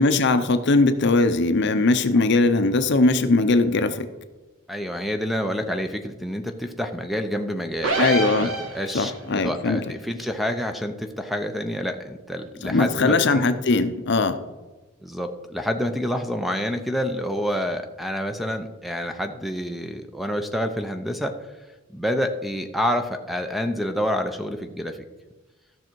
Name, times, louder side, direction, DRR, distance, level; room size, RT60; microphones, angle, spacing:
voice 1, 0.0-4.1 8.0-8.5 8.9-9.8 12.6-14.4, left 3 dB, 55° left, 10 dB, 0.7 m, -20 dB
voice 2, 4.7-13.4 15.0-21.3 21.9-25.0, equal, ahead, 7 dB, 0.6 m, -28 dB
sound 1, 7.8-9.2, right 2 dB, 65° right, 1.5 m, -25 dB
14.5 x 6.1 x 4.6 m, 1.2 s
head